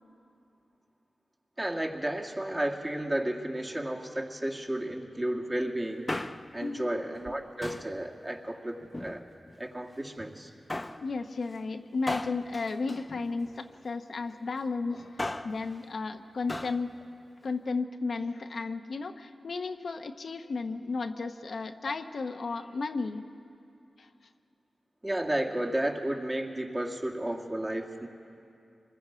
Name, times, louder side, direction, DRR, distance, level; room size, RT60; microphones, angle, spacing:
voice 1, 1.6-6.1 6.5-9.2 9.6-10.5 25.0-28.1, right 1 dB, 25° right, 0 dB, 2.1 m, -32 dB
Male speech man speaking, 5.9-6.7 7.6-8.0 8.8-9.6 10.7-11.1 12.1-13.7 15.0-15.6 16.5-16.8 17.1-17.2, left 2 dB, 25° left, 0.7 m, -37 dB
voice 2, 11.0-17.0 17.4-23.3 24.0-24.1, left 4 dB, 70° left, 6 dB, 0.8 m, -34 dB
26.5 x 21.0 x 5.0 m, 2.6 s
cardioid pair, 65°, 0 cm